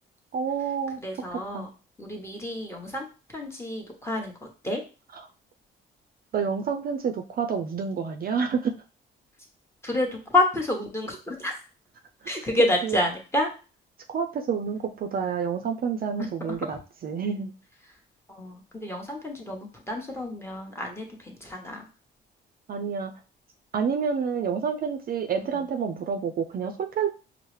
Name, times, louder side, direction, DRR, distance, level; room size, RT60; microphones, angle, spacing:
voice 1, 0.3-1.0 1.5-1.7 5.1-5.3 6.3-8.7 12.2-12.4 12.8-13.0 14.1-17.5 22.7-23.1 23.7-27.1, right 6 dB, 50° right, 4 dB, 0.4 m, -28 dB
voice 2, 1.0-1.7 2.0-3.0 3.3-4.8 9.8-11.6 12.3-13.5 18.3-21.9, left 1 dB, 10° left, 1 dB, 1.0 m, -28 dB
4.5 x 2.0 x 3.1 m, 0.33 s
cardioid pair, 90°, 20 cm